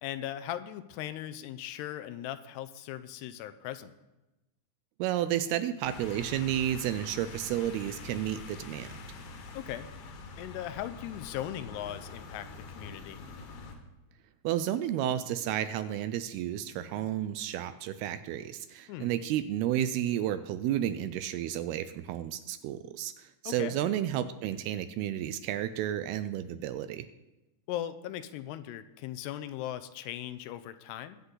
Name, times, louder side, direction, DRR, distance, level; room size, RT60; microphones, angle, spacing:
voice 1, 0.0-3.9 9.5-9.9 10.4-13.2 18.9-19.1 23.5-23.8 27.7-31.2, left 12 dB, 85° left, 11 dB, 2.7 m, -38 dB
voice 2, 5.0-8.9 14.4-27.1, right 11 dB, 80° right, 12 dB, 2.5 m, -32 dB
sound 1, 5.8-13.8, left 3 dB, 70° left, 3.1 m, -45 dB
22.0 x 8.1 x 3.9 m, 1.0 s
omnidirectional pair, 4.8 m